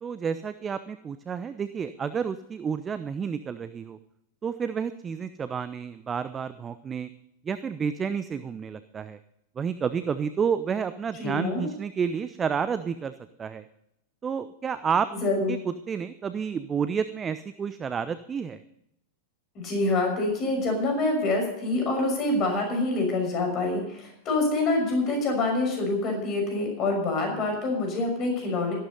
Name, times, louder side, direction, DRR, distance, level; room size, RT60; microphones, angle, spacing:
voice 1, 0.0-4.0 4.4-7.1 7.4-9.2 9.6-13.1 13.4-13.6 14.2-15.6 15.9-18.6, right 6 dB, 20° right, 12 dB, 0.7 m, -30 dB
voice 2, 11.2-11.7 15.2-15.5 19.5-28.7, left 2 dB, 35° left, 1 dB, 6.0 m, -26 dB
14.5 x 11.5 x 5.4 m, 0.80 s
figure-of-eight pair, 90°, 0 cm